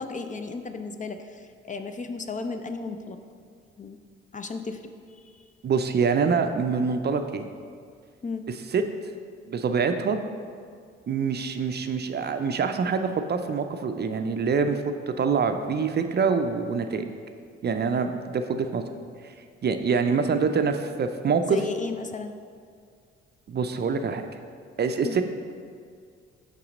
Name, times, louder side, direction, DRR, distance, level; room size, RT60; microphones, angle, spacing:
voice 1, 0.0-3.2 3.8-4.0 4.3-5.4 8.2-8.5 21.5-22.3 25.0-25.2, left 4 dB, 25° left, 7 dB, 0.5 m, -35 dB
voice 2, 5.6-7.5 8.7-8.8 9.5-10.2 11.1-17.1 17.6-18.8 19.2-19.3 19.6-21.6 23.5-24.3 24.8-25.2, right 5 dB, 35° right, 7 dB, 0.5 m, -25 dB
6.0 x 5.6 x 3.9 m, 2.2 s
hypercardioid pair, 45°, 30 cm